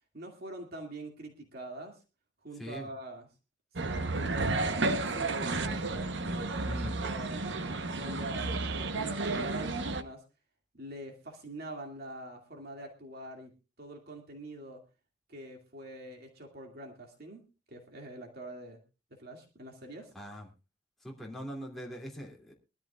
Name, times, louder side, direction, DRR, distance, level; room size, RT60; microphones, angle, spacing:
voice 1, 0.1-2.0 2.4-3.3 3.8-6.2 7.0-7.6 7.9-8.5 8.7-10.2 10.8-13.5 13.8-14.8 15.3-18.8 19.1-20.1, right 1 dB, 55° right, 2 dB, 2.4 m, -44 dB
sound 1, 3.8-10.0, right 3 dB, 70° right, 1.0 m, -32 dB
voice 2, 6.6-6.9 20.1-20.5 21.0-22.5, equal, ahead, -2 dB, 2.7 m, -42 dB
23.0 x 13.0 x 2.4 m, 0.29 s
head